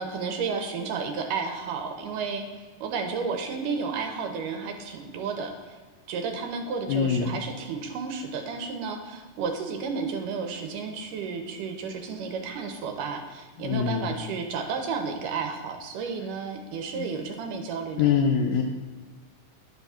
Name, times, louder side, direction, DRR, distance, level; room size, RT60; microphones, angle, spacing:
voice 1, 0.0-5.8 6.1-18.0, right 5 dB, 80° right, 4 dB, 2.3 m, -32 dB
voice 2, 6.9-7.4 13.6-14.1 16.9-17.1 18.0-18.6, left 7 dB, 85° left, 3 dB, 1.6 m, -24 dB
10.0 x 3.6 x 5.7 m, 1.4 s
omnidirectional pair, 3.8 m